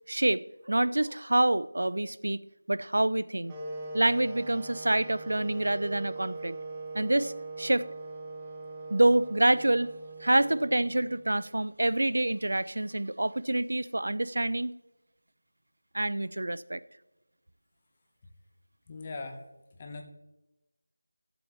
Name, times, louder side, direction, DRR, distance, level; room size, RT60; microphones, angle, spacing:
voice 1, 0.1-2.4 2.7-3.5 3.9-6.6 6.9-7.9 8.9-9.9 10.2-14.7 15.9-16.8, right 1 dB, 70° right, 17 dB, 0.3 m, -27 dB
sound 1, 3.5-11.5, right 2 dB, 10° right, 0.6 m, -41 dB
voice 2, 18.9-19.4 19.8-20.0, left 3 dB, 20° left, 3 dB, 0.8 m, -39 dB
14.0 x 7.7 x 3.0 m, 1.0 s
figure-of-eight pair, 175°, 0 cm